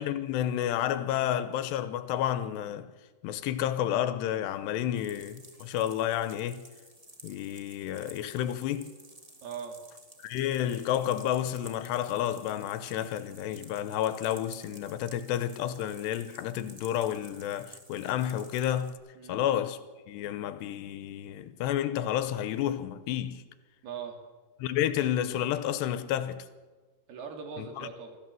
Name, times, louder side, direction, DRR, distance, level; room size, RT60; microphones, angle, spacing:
voice 1, 0.0-2.9 3.2-6.6 7.2-8.9 10.2-19.0 19.3-19.8 20.1-23.4 24.6-26.5 27.6-27.9, left 11 dB, 80° left, 3.0 m, -30 dB
sound 1, 4.9-18.9, right 1 dB, 20° right, 0.9 m, -53 dB
voice 2, 9.4-9.8 19.2-19.4 23.8-24.2 27.1-28.2, right 6 dB, 65° right, 4.7 m, -40 dB
24.5 x 14.0 x 7.7 m
omnidirectional pair, 5.0 m